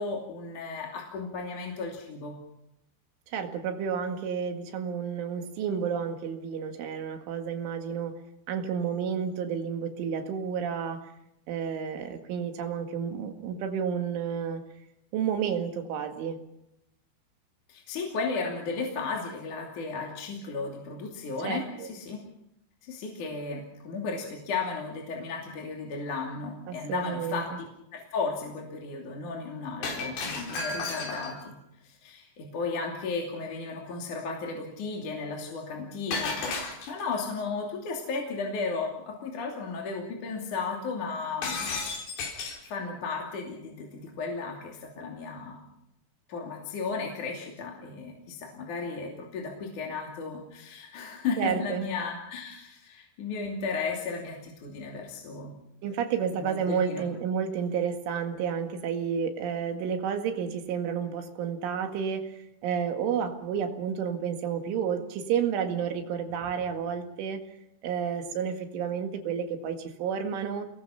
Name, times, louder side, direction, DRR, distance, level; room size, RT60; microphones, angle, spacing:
voice 1, 0.0-2.4 17.7-22.2 22.8-27.5 27.9-31.5 31.8-41.9 42.6-45.7 46.3-55.5 56.4-57.1, left 4 dB, 45° left, 0 dB, 3.8 m, -34 dB
voice 2, 3.3-8.2 8.5-11.1 11.5-14.6 15.1-16.4 21.4-21.9 26.7-27.4 51.4-51.8 55.8-67.4 67.8-70.6, right 7 dB, 80° right, 6 dB, 4.5 m, -31 dB
Shatter, 29.8-31.5 36.1-37.2 41.4-42.7, left 4 dB, 80° left, 6.6 m, -33 dB
29.5 x 21.0 x 5.8 m, 0.81 s
omnidirectional pair, 5.5 m